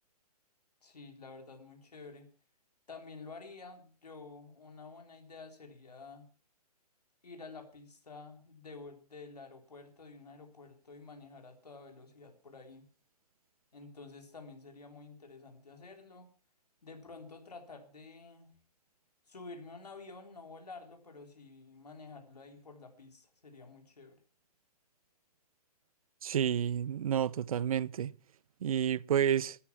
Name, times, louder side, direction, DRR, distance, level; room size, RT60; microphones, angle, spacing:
voice 1, 0.8-2.3 2.9-6.3 7.2-12.9 13.7-16.3 16.8-18.5 19.3-24.2, left 3 dB, 80° left, 3.8 m, -50 dB
voice 2, 26.2-28.1 28.6-29.6, right 9 dB, 60° right, 0.7 m, -30 dB
14.0 x 12.5 x 6.1 m
figure-of-eight pair, 130°, 20 cm